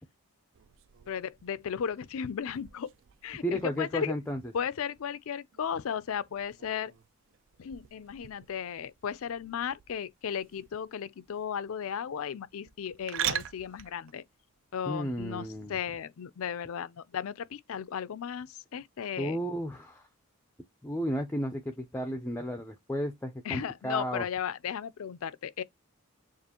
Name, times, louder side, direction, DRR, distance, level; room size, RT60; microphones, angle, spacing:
sound 1, 0.5-15.6, right 11 dB, 60° right, 0.3 m, -43 dB
voice 1, 1.1-2.9 3.2-4.1 4.5-6.9 7.6-14.2 14.7-19.4 23.4-25.6, left 7 dB, 70° left, 0.4 m, -35 dB
voice 2, 3.4-4.4 14.9-15.8 19.2-20.0 20.8-24.3, equal, 10° left, 0.4 m, -33 dB
6.7 x 2.4 x 2.8 m
head